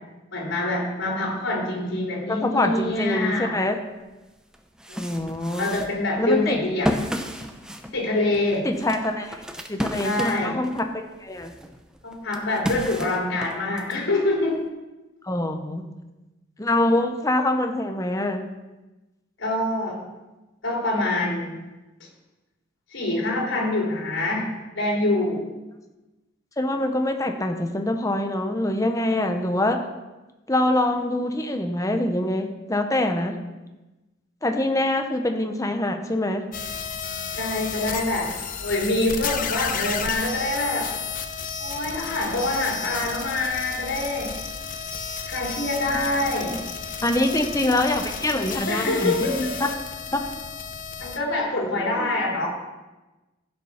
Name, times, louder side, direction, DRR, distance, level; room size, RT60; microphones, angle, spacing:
voice 1, 0.3-3.5 4.9-5.1 5.6-7.0 7.9-8.7 10.0-10.6 12.0-14.6 19.4-20.0 20.6-21.5 22.9-25.5 37.4-38.3 38.6-40.9 41.6-44.3 45.3-46.6 48.7-49.4 51.0-52.5, left 2 dB, 90° left, -2 dB, 4.0 m, -25 dB
voice 2, 2.3-3.8 5.0-5.7 6.2-6.6 8.6-9.4 9.7-11.5 15.2-15.8 16.6-18.4 26.6-29.8 30.5-33.3 34.4-36.4 47.0-49.4 50.1-50.4 51.6-51.9, left 1 dB, 15° left, 5 dB, 0.9 m, -24 dB
sound 1, 4.0-4.1 4.5-10.9 11.4-14.0, equal, 5° right, 0.7 m, -32 dB
sound 2, 36.5-51.2, left 6 dB, 45° left, 0.8 m, -32 dB
15.0 x 6.1 x 5.8 m, 1.1 s
head